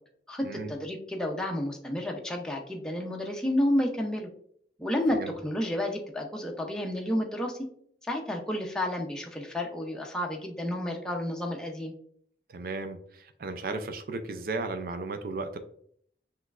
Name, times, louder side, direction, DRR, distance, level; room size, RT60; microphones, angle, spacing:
voice 1, 0.3-4.3 4.8-7.6 8.1-11.9, left 1 dB, 5° left, 0 dB, 0.5 m, -31 dB
voice 2, 12.5-15.6, right 3 dB, 55° right, 8 dB, 0.4 m, -35 dB
5.7 x 3.1 x 2.3 m, 0.64 s
head